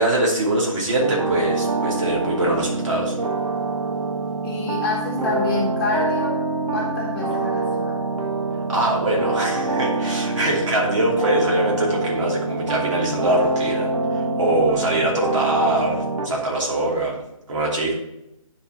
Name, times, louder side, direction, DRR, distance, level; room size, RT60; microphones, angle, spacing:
voice 1, 0.0-3.2 8.7-17.2 17.5-17.9, right 1 dB, 60° right, -2 dB, 2.7 m, -23 dB
sound 1, 1.0-16.3, right 2 dB, 75° right, 1.4 m, -25 dB
voice 2, 4.4-6.4 6.7-8.0, left 2 dB, 25° left, -3 dB, 1.1 m, -27 dB
9.5 x 4.5 x 4.3 m, 0.88 s
hypercardioid pair, 160°, 18 cm